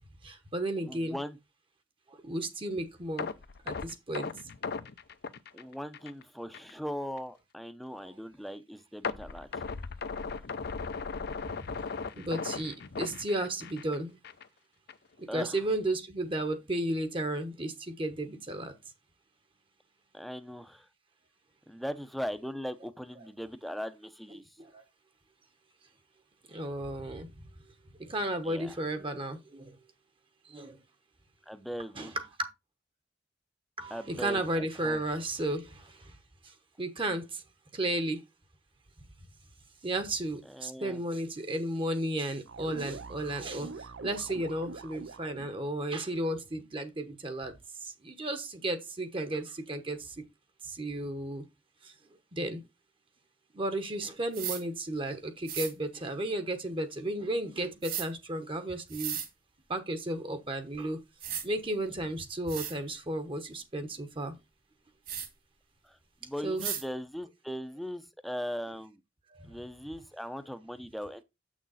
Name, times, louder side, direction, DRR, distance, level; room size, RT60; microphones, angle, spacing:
voice 1, 0.2-1.2 2.1-3.3 3.6-4.3 8.0-8.1 12.2-14.2 15.2-18.7 23.2-23.3 24.6-24.8 26.5-27.3 28.0-29.8 30.5-30.8 31.9-32.5 33.8-36.1 36.4-36.5 36.8-37.4 37.7-38.2 39.8-47.5 47.8-50.2 50.6-51.4 51.8-51.9 52.4-52.6 53.5-59.2 59.7-61.0 61.4-64.3 66.4-66.7 69.3-69.5, right 1 dB, 30° right, 1.0 m, -34 dB
voice 2, 0.8-1.4 5.5-9.5 15.3-15.6 20.1-20.9 21.7-24.4 28.4-28.7 31.5-32.2 33.9-35.0 40.5-41.0 65.8-66.0 66.2-69.0 69.5-71.2, equal, ahead, 0.7 m, -39 dB
sound 1, 3.2-6.2 6.5-6.7 7.2-7.3 9.0-14.0 14.2-14.5 14.9-15.0, left 4 dB, 60° left, 0.6 m, -37 dB
sound 2, 42.5-45.6, right 4 dB, 80° right, 0.6 m, -43 dB
sound 3, 54.3-54.6 55.5-55.7 57.8-58.1 58.9-59.3 60.7-60.8 61.2-61.4 62.1-62.2 62.5-62.7 65.1-65.3 66.6-66.8, right 9 dB, 55° right, 2.0 m, -35 dB
7.4 x 6.3 x 4.1 m
head